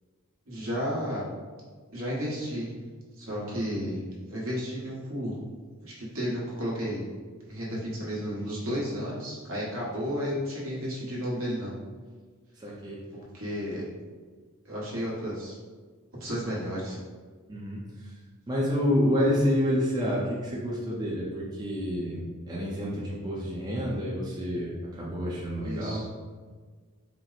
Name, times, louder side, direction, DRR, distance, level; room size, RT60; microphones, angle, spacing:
voice 1, 0.5-1.3 1.9-2.7 3.2-4.0 4.3-5.4 5.8-7.0 7.5-11.7 13.1-13.8 14.6-15.6 16.2-17.0 25.6-26.0, equal, 65° right, -5 dB, 1.2 m, -32 dB
voice 2, 3.3-3.6 12.6-13.0 17.5-17.8 18.5-22.2 22.5-26.0, equal, 20° right, -6 dB, 0.5 m, -28 dB
4.4 x 2.0 x 3.9 m, 1.5 s
head